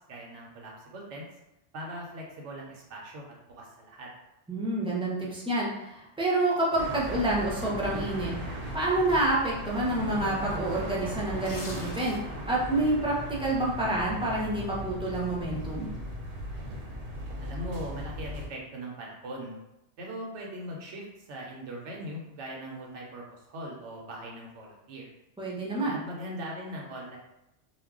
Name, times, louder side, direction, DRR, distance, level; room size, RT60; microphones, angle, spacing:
voice 1, 0.1-1.2 1.7-4.1 17.4-19.6 20.0-25.1 25.8-27.2, equal, 85° right, -1 dB, 0.9 m, -40 dB
voice 2, 4.5-8.4 8.7-15.9 25.4-26.0, right 2 dB, 5° right, -6 dB, 0.4 m, -28 dB
sound 1, 6.8-18.5, equal, 60° right, 0.8 m, -37 dB
sound 2, 11.4-12.5 12.9-13.0, left 2 dB, 65° left, 0.8 m, -43 dB
2.3 x 2.1 x 3.5 m, 0.91 s
omnidirectional pair, 1.2 m